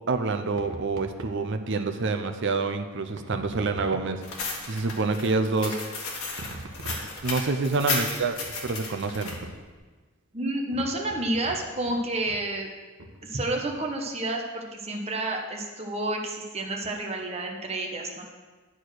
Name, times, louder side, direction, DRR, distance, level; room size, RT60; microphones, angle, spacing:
voice 1, 0.1-5.8 7.2-8.4 8.6-9.4, right 3 dB, 55° right, 8 dB, 0.6 m, -27 dB
sound 1, 0.5-1.4 3.2-4.3 6.4-7.4 8.4-8.7 9.3-9.7 10.7-12.0 12.3-12.4 13.0-13.2, right 2 dB, 85° right, 1.0 m, -41 dB
sound 2, 4.2-9.3, left 3 dB, 85° left, 1.6 m, -33 dB
voice 2, 10.3-12.7 13.2-18.2, right 1 dB, 30° right, 1 dB, 1.0 m, -30 dB
10.0 x 4.5 x 6.3 m, 1.3 s
head